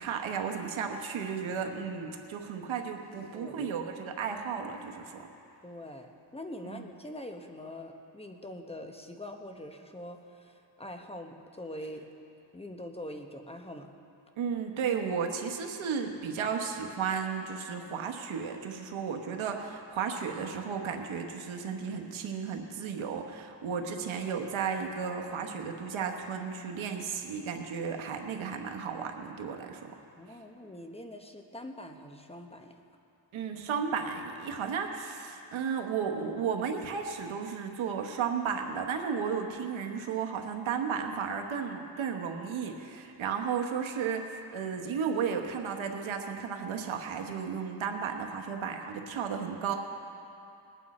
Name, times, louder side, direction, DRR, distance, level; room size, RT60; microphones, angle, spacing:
voice 1, 0.0-5.3 6.6-6.8 14.4-29.9 33.3-49.8, right 6 dB, 90° right, 4 dB, 1.2 m, -34 dB
voice 2, 3.3-3.7 5.6-12.0 12.5-13.9 30.2-32.7, left 1 dB, 15° left, 4 dB, 1.0 m, -43 dB
20.0 x 9.0 x 4.3 m, 2.8 s
cardioid pair, 85°, 46 cm